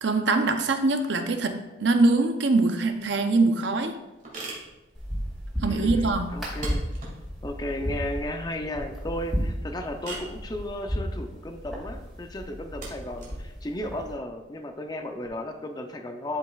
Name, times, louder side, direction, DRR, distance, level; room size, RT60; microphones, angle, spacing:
voice 1, 0.0-3.9 5.6-6.3, right 3 dB, 70° right, 7 dB, 0.7 m, -23 dB
sound 1, 3.0-15.3, right 2 dB, 40° right, 2.2 m, -44 dB
sound 2, 4.9-14.1, equal, ahead, 2.2 m, -34 dB
voice 2, 5.6-6.8 7.4-16.4, left 1 dB, 20° left, 5 dB, 0.6 m, -34 dB
12.0 x 5.3 x 2.4 m, 1.0 s
head